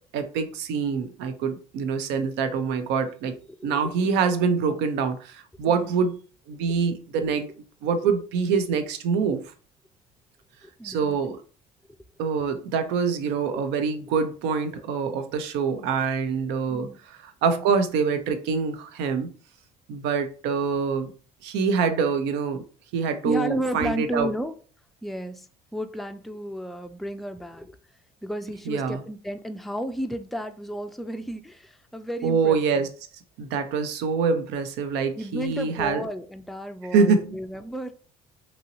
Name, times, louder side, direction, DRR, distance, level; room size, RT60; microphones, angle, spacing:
voice 1, 0.1-3.3 3.6-6.2 6.5-7.5 7.8-9.5 10.8-11.4 12.2-16.9 17.4-19.3 19.9-21.1 21.4-22.6 22.9-24.3 28.7-29.0 32.2-32.9 33.4-36.0 36.9-37.4, right 5 dB, 75° right, 0.5 m, -25 dB
voice 2, 3.5-4.1 5.6-6.0 8.0-8.1 10.6-11.2 16.7-17.0 23.2-24.5 25.0-27.8 28.2-32.9 35.2-37.9, equal, ahead, 0.4 m, -33 dB
2.9 x 2.7 x 2.6 m
supercardioid pair, 65°, 18 cm